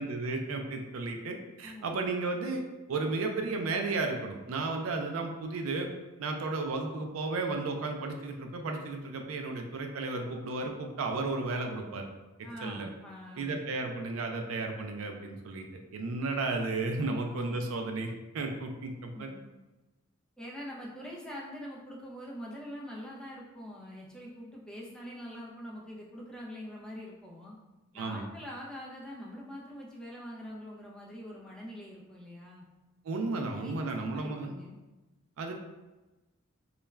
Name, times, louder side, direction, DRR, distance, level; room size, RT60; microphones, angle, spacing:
voice 1, 0.0-5.9 6.2-12.1 12.6-12.9 13.4-19.3 27.9-28.2 33.0-34.5 35.4-35.5, right 3 dB, 70° right, 4 dB, 0.4 m, -33 dB
voice 2, 1.6-2.0 12.4-13.6 17.0-17.2 19.1-19.4 20.4-27.6 27.9-32.6 33.5-34.8, equal, 5° left, -4 dB, 0.4 m, -44 dB
2.3 x 2.1 x 3.1 m, 1.1 s
head